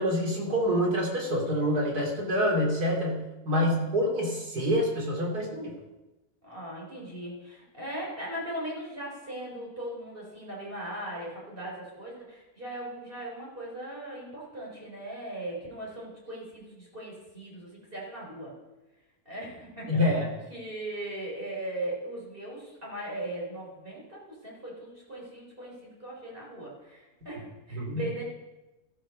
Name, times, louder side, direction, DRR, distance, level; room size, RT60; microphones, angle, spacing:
voice 1, 0.0-5.8 19.9-20.3 27.7-28.1, equal, 85° right, 0 dB, 3.7 m, -27 dB
voice 2, 3.5-4.0 6.4-18.5 19.2-20.2 20.5-28.2, right 1 dB, 35° right, -4 dB, 4.4 m, -39 dB
16.0 x 13.5 x 5.3 m, 1.1 s
omnidirectional pair, 1.6 m